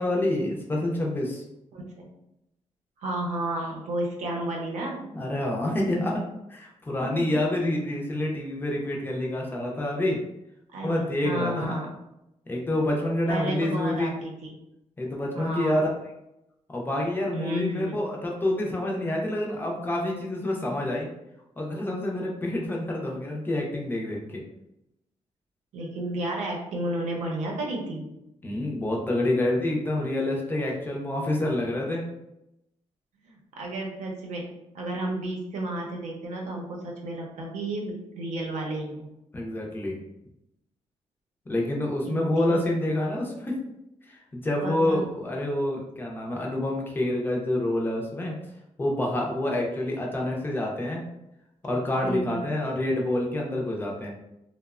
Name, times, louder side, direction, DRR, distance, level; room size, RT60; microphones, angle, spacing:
voice 1, 0.0-1.4 5.1-6.2 6.5-10.2 10.8-11.8 12.5-14.1 15.0-15.9 16.7-21.1 21.6-24.4 28.4-32.0 39.3-40.0 41.5-43.6 44.1-48.3 48.8-51.0 51.6-54.1, left 1 dB, 15° left, -1 dB, 0.4 m, -27 dB
voice 2, 1.7-2.1 3.0-5.0 7.0-7.1 10.7-11.9 13.3-14.5 15.3-15.8 17.3-18.0 25.7-28.1 33.2-39.1 42.1-42.6 44.6-45.0 52.0-52.5, right 1 dB, 90° right, -1 dB, 0.6 m, -32 dB
2.8 x 2.0 x 2.3 m, 0.86 s
wide cardioid pair, 180°, 12 cm